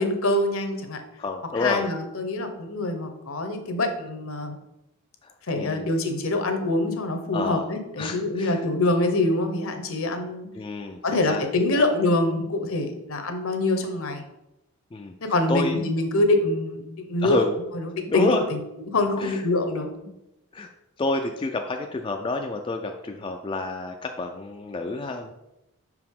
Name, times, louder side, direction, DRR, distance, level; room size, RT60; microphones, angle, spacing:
voice 1, 0.0-1.0 1.6-4.5 5.5-10.5 11.0-14.2 15.2-17.4 17.7-18.6 18.9-19.9, left 2 dB, 65° left, 6 dB, 0.8 m, -25 dB
voice 2, 1.2-1.8 5.2-5.9 7.3-7.7 8.0-8.6 10.5-11.4 11.7-11.8 14.9-15.1 15.5-15.8 17.2-17.6 18.1-18.4 19.2-19.4 20.1-20.2 20.5-20.7 21.0-25.3, left 3 dB, 25° left, 3 dB, 0.3 m, -29 dB
6.0 x 4.7 x 3.6 m, 0.89 s
head